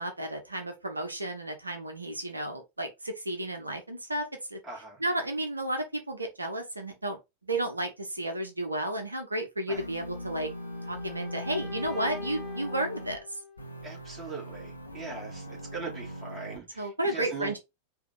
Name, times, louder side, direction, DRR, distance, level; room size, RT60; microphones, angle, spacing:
voice 1, 0.0-4.6 5.0-7.2 7.5-10.5 10.9-13.2 15.3-15.6 16.8-17.6, right 1 dB, 80° right, 0.9 m, -32 dB
voice 2, 4.6-5.0 9.7-9.8 13.8-17.6, right 4 dB, 20° right, 2.6 m, -40 dB
sound 1, 9.7-13.2 13.6-16.6, equal, 85° left, 0.9 m, -40 dB
sound 2, 10.0-14.0, left 4 dB, 15° left, 1.2 m, -45 dB
4.7 x 2.8 x 3.8 m
figure-of-eight pair, 90°, 0 cm